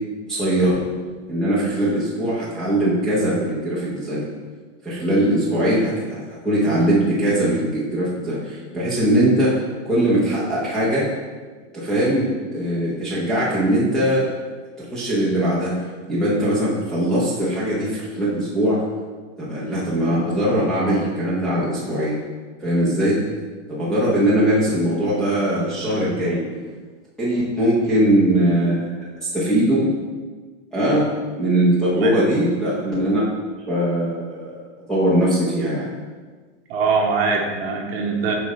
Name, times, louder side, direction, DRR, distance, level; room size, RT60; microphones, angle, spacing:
voice 1, 0.3-0.8 1.3-4.3 4.8-9.5 9.8-11.1 11.7-14.3 14.8-15.7 16.1-18.8 19.4-22.2 22.6-23.1 23.7-26.4 27.2-29.9 30.7-31.1 31.4-33.2 33.7-35.9, right 1 dB, ahead, -10 dB, 0.9 m, -21 dB
voice 2, 36.7-38.3, right 4 dB, 50° right, 1 dB, 1.2 m, -22 dB
7.6 x 5.0 x 3.2 m, 1.4 s
supercardioid pair, 170°, 37 cm